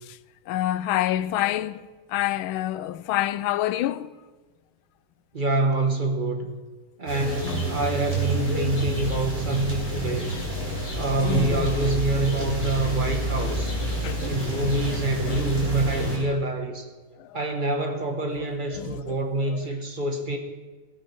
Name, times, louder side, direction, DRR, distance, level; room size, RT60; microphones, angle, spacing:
voice 1, 0.5-1.8 2.1-4.1 7.4-7.6 9.1-9.2 10.5-11.7 13.4-13.5 13.9-14.2 14.6-14.7 15.3-15.4 17.2-17.3 18.8-19.2 19.5-19.6, left 14 dB, 80° left, 1.3 m, -28 dB
voice 2, 5.3-6.6 7.0-10.3 11.0-13.7 14.3-16.9 17.3-20.4, right 2 dB, 30° right, 1.0 m, -26 dB
sound 1, 7.1-16.2, right 1 dB, 5° right, 4.8 m, -28 dB
18.0 x 8.7 x 6.0 m
omnidirectional pair, 2.3 m